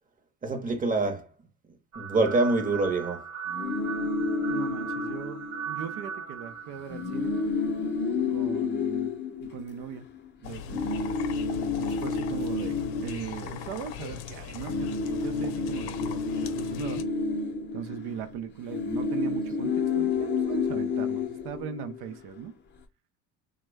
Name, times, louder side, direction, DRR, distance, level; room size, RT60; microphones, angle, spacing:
voice 1, 0.4-1.3 2.0-3.2, right 3 dB, 25° right, 0.7 m, -25 dB
sound 1, 1.9-8.0, right 7 dB, 45° right, 1.0 m, -38 dB
sound 2, 3.5-6.0 6.3-6.5 6.8-10.2 10.7-14.3 14.5-22.1, left 4 dB, 30° left, 0.5 m, -30 dB
voice 2, 4.5-7.4 8.3-10.1 10.4-11.0 11.8-17.0 17.7-22.5, right 8 dB, 85° right, 0.6 m, -39 dB
sound 3, 10.4-17.0, left 9 dB, 90° left, 0.6 m, -40 dB
3.2 x 2.1 x 3.3 m
cardioid pair, 130°, 37 cm